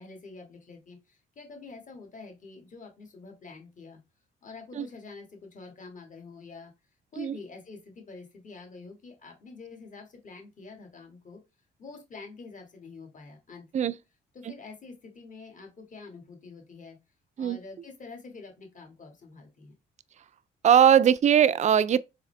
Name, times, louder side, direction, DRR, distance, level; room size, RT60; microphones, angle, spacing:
voice 1, 0.0-4.0 4.4-6.7 7.1-11.4 11.8-13.9 14.3-17.0 17.4-19.7, left 4 dB, 40° left, 1.6 m, -46 dB
voice 2, 20.6-22.0, right 9 dB, 35° right, 0.4 m, -20 dB
4.1 x 3.7 x 3.2 m
cardioid pair, 90°, 20 cm